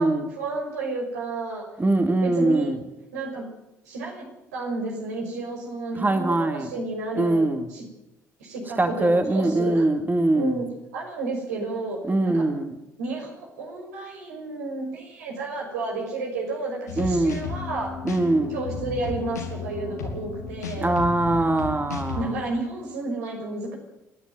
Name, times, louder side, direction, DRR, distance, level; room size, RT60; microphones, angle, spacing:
voice 1, 0.0-1.7 2.2-2.7 3.1-3.4 3.8-4.2 4.5-7.8 8.4-9.9 10.3-10.7 10.9-12.5 13.0-17.9 18.5-20.9 22.1-23.8, right 3 dB, 80° right, 0 dB, 6.0 m, -31 dB
voice 2, 1.8-2.8 5.9-6.7 7.2-7.7 8.8-10.6 12.1-12.8 17.0-17.4 18.1-18.6 20.8-22.3, right 2 dB, 20° right, 6 dB, 2.5 m, -22 dB
sound 1, 16.9-22.2, left 5 dB, 90° left, 2.8 m, -34 dB
27.5 x 10.5 x 9.4 m, 0.89 s
hypercardioid pair, 50°, 9 cm